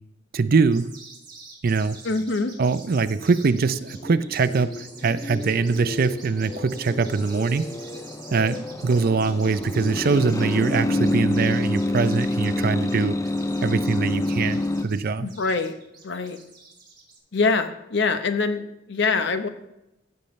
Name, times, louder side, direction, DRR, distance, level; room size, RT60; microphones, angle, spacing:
voice 1, 0.3-0.9 1.6-2.0 2.6-7.7 8.3-13.2 13.6-15.3, right 4 dB, 50° right, 12 dB, 0.5 m, -23 dB
sound 1, 0.7-17.2, right 4 dB, 25° right, 2.7 m, -46 dB
voice 2, 2.0-2.5 15.2-15.7 16.0-16.4 17.3-19.5, left 4 dB, 65° left, 9 dB, 0.8 m, -24 dB
sound 2, 3.2-14.8, left 1 dB, 15° left, 0.4 m, -28 dB
15.5 x 6.7 x 3.2 m, 0.88 s
head